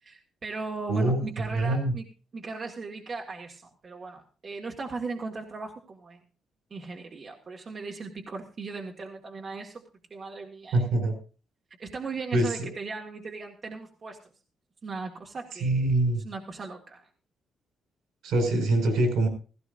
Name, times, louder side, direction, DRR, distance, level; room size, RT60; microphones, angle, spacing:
voice 1, 0.0-2.1 2.3-6.2 6.7-10.8 11.8-14.2 14.8-17.1, right 4 dB, 40° right, 1 dB, 1.9 m, -38 dB
voice 2, 0.9-1.2 1.5-1.9 10.7-11.2 12.3-12.7 15.6-16.2 18.2-19.3, right 2 dB, 80° right, 6 dB, 5.5 m, -24 dB
16.5 x 16.0 x 2.6 m, 0.35 s
cardioid pair, 90°, 0 cm